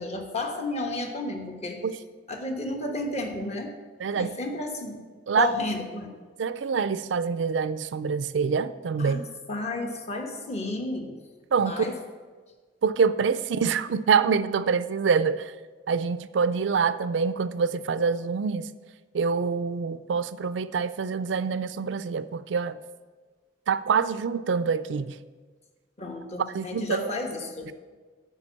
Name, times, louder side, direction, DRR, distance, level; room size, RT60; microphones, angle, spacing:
voice 1, 0.0-1.8 2.3-3.7 4.1-5.0 5.4-6.2 9.0-9.2 9.5-11.1 11.6-12.0 26.0-27.7, left 2 dB, 40° left, 3 dB, 1.2 m, -32 dB
voice 2, 4.0-4.3 5.3-5.5 6.4-9.2 11.5-11.9 12.8-15.5 15.9-18.7 19.1-22.8 23.7-25.2 26.5-27.1 27.7-27.8, right 5 dB, 75° right, 14 dB, 0.4 m, -25 dB
9.7 x 4.6 x 7.4 m, 1.4 s
head